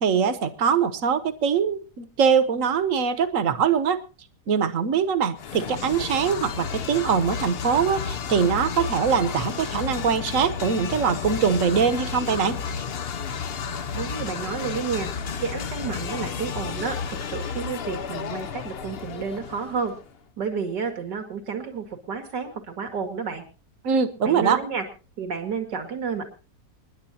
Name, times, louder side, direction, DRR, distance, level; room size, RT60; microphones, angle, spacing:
voice 1, 0.0-4.0 4.5-12.6 23.8-24.6, right 7 dB, 55° right, 11 dB, 1.4 m, -22 dB
sound 1, 5.4-20.1, left 6 dB, 50° left, 0.7 m, -32 dB
voice 2, 13.9-15.1 15.4-19.9 20.4-23.4 24.2-24.8 25.2-26.3, right 5 dB, 90° right, 6 dB, 2.8 m, -31 dB
27.5 x 11.0 x 2.8 m, 0.33 s
omnidirectional pair, 1.8 m